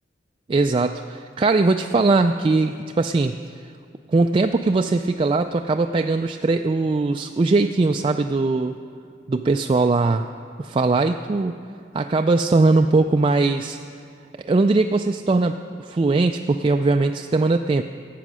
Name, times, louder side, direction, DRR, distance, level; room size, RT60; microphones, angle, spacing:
voice 1, 0.5-3.4 4.1-8.8 9.3-10.3 10.6-11.5 11.9-13.8 14.4-17.8, right 3 dB, 30° right, 5 dB, 0.3 m, -20 dB
16.5 x 8.5 x 6.2 m, 2.4 s
head